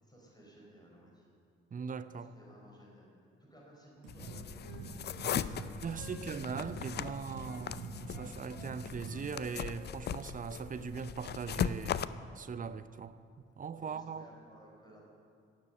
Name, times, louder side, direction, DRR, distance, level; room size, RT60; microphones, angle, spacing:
voice 1, 0.0-1.3 2.1-3.1 3.5-6.4 7.3-7.7 13.8-15.0, right 1 dB, 10° left, 4.3 m, -58 dB
voice 2, 1.7-2.3 5.8-13.2 13.6-14.2, right 6 dB, 25° right, 0.6 m, -40 dB
sound 1, 4.0-9.2, right 3 dB, 70° right, 3.6 m, -46 dB
sound 2, 4.1-12.1, left 9 dB, 30° left, 0.4 m, -39 dB
Wind instrument woodwind instrument, 4.2-7.6 8.1-10.1 10.4-10.6 10.9-11.2 11.5-11.7, left 5 dB, 60° left, 2.0 m, -56 dB
17.5 x 7.5 x 6.5 m
figure-of-eight pair, 40°, 34 cm